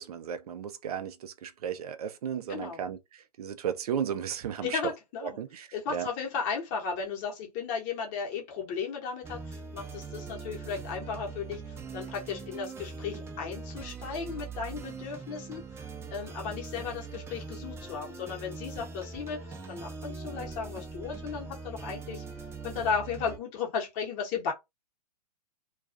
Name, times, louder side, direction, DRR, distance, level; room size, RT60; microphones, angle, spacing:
voice 1, 0.0-4.9 5.2-6.1, right 8 dB, 65° right, 0.5 m, -35 dB
voice 2, 2.5-2.8 4.6-5.4 5.7-15.6 16.1-22.2 22.6-24.5, left 6 dB, 35° left, 0.9 m, -35 dB
sound 1, 9.2-23.4, right 4 dB, 10° right, 0.5 m, -42 dB
2.3 x 2.3 x 2.4 m
hypercardioid pair, 115°, 21 cm